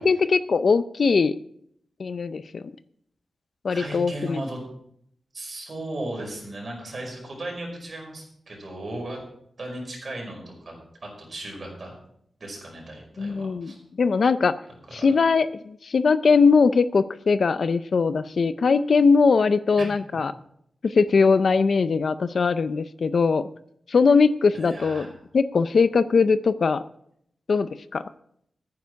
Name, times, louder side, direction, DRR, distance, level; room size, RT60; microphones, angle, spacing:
voice 1, 0.0-1.3 2.0-2.7 3.6-4.4 13.2-14.5 14.9-20.3 20.8-23.5 23.9-25.1 25.3-26.8 27.5-28.0, left 4 dB, 55° left, 13 dB, 0.4 m, -21 dB
voice 2, 3.7-4.6 5.3-9.2 9.6-10.7 11.0-11.9 12.4-13.8 15.0-15.1 24.5-25.1, right 1 dB, 40° right, -1 dB, 5.4 m, -36 dB
14.5 x 9.6 x 4.7 m, 0.71 s
wide cardioid pair, 175°, 0 cm